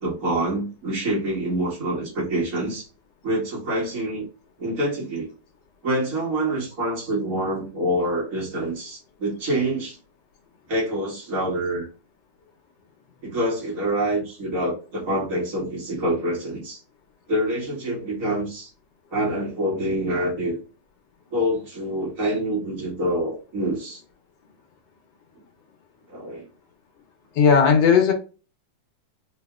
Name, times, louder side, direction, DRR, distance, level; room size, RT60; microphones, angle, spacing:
voice 1, 0.0-2.9 3.2-4.3 4.6-5.3 5.8-10.0 10.7-11.9 13.2-16.8 17.3-18.7 19.1-20.6 21.3-24.0 26.1-26.5, right 1 dB, 45° right, 2.0 m, -26 dB
voice 2, 27.4-28.1, left 6 dB, 70° left, 1.5 m, -16 dB
4.2 x 2.8 x 2.4 m
omnidirectional pair, 2.1 m